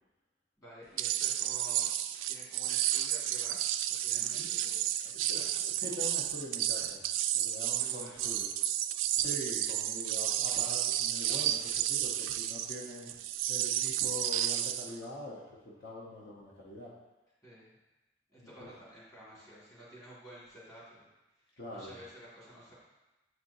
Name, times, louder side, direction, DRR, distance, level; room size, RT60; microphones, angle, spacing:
voice 1, 0.6-1.9 2.3-3.7 4.0-5.6 6.7-6.9 7.8-8.3 17.4-17.8 18.3-21.1 21.4-22.7, right 1 dB, 20° left, -8 dB, 2.0 m, -52 dB
sound 1, 1.0-15.0, right 12 dB, 85° right, 0.3 m, -32 dB
voice 2, 4.2-4.5 5.3-5.4 5.8-7.0 7.3-8.5 9.2-13.1 13.5-16.9 18.6-18.7 21.6-22.0, left 1 dB, 60° left, -5 dB, 1.0 m, -43 dB
7.9 x 4.4 x 2.7 m, 1.0 s
head